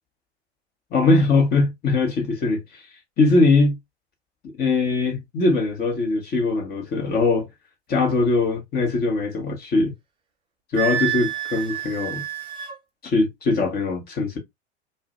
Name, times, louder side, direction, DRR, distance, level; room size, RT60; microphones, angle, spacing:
voice 1, 0.9-2.9 3.2-3.8 4.6-7.5 7.9-9.9 10.7-12.2 13.0-14.4, left 3 dB, 25° left, 0.9 m, -21 dB
Wind instrument woodwind instrument, 10.7-12.8, right 11 dB, 15° right, 0.6 m, -28 dB
2.5 x 2.1 x 2.4 m
figure-of-eight pair, 95°, 35 cm